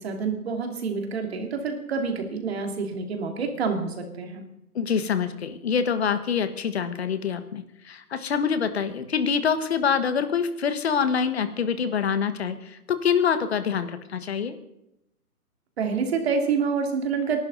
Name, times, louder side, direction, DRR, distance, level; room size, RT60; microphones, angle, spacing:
voice 1, 0.0-4.4 15.8-17.4, right 5 dB, 40° right, 4 dB, 2.6 m, -27 dB
voice 2, 4.7-14.5, left 7 dB, 40° left, 10 dB, 1.5 m, -25 dB
28.5 x 12.0 x 4.0 m, 0.85 s
hypercardioid pair, 160°, 46 cm